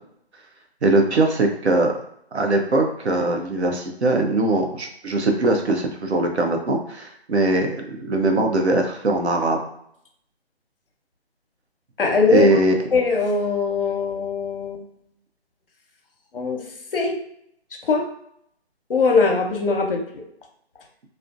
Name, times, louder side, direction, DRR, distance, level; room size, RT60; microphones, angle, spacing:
voice 1, 0.8-1.9 2.3-9.6 12.3-12.8, right 2 dB, 85° right, 3 dB, 0.7 m, -21 dB
voice 2, 12.0-12.5 12.9-14.8 16.3-16.6 16.9-17.2 17.9-18.1 18.9-20.0, left 4 dB, 60° left, 2 dB, 0.7 m, -20 dB
2.6 x 2.1 x 2.5 m, 0.72 s
figure-of-eight pair, 155°, 32 cm